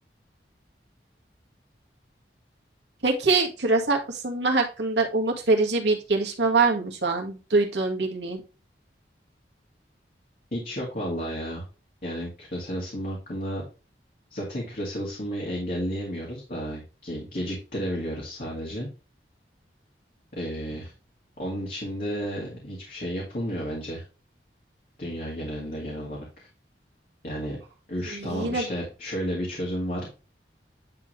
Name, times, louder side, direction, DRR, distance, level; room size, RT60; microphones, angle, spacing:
voice 1, 3.0-8.4 28.1-28.6, right 3 dB, 80° right, 1 dB, 1.9 m, -24 dB
voice 2, 10.5-11.6 12.0-13.6 14.3-18.9 20.3-20.9 21.4-24.0 25.0-26.5 27.2-27.6 27.9-30.1, equal, 50° left, -4 dB, 2.1 m, -32 dB
9.7 x 3.8 x 3.2 m, 0.33 s
head